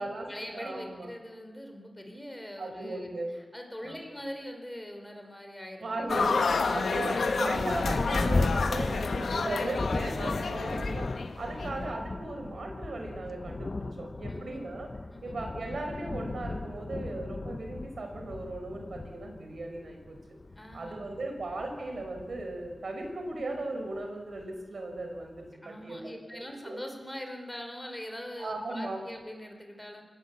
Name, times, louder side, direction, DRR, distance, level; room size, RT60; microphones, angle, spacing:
voice 1, 0.0-6.4 14.3-14.7 15.1-15.4 20.6-21.1 25.6-30.0, equal, 10° left, 4 dB, 4.8 m, -43 dB
voice 2, 0.5-1.1 2.6-3.3 3.8-4.0 5.8-6.4 6.7-14.9 15.2-20.2 20.7-26.2 26.6-26.8 28.4-29.0, right 2 dB, 75° right, 3 dB, 5.2 m, -37 dB
sound 1, 6.1-11.7, left 4 dB, 90° left, 1.7 m, -30 dB
Thunder, 7.5-23.6 24.4-24.5 25.0-25.5, left 3 dB, 45° left, 1.3 m, -36 dB
25.0 x 19.0 x 8.3 m, 1.5 s
wide cardioid pair, 75°, 0 cm